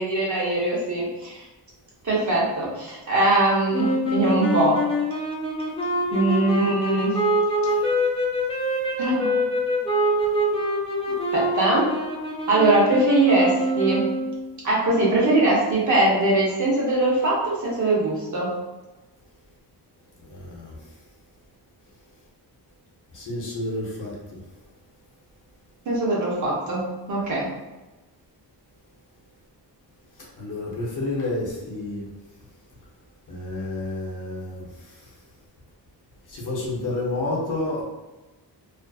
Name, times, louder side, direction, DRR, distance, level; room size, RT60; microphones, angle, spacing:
voice 1, 0.0-1.4 2.0-4.8 6.1-7.2 9.0-9.4 11.3-11.9 12.5-14.1 14.6-18.5 25.9-27.5, right 2 dB, 45° right, -5 dB, 0.8 m, -21 dB
sound 1, 3.7-14.5, equal, 15° left, 0.3 m, -25 dB
voice 2, 20.2-20.8 23.1-24.4 30.4-32.1 33.3-35.1 36.3-37.8, left 2 dB, 50° left, -4 dB, 0.7 m, -30 dB
2.4 x 2.4 x 2.3 m, 1.1 s
wide cardioid pair, 170°, 42 cm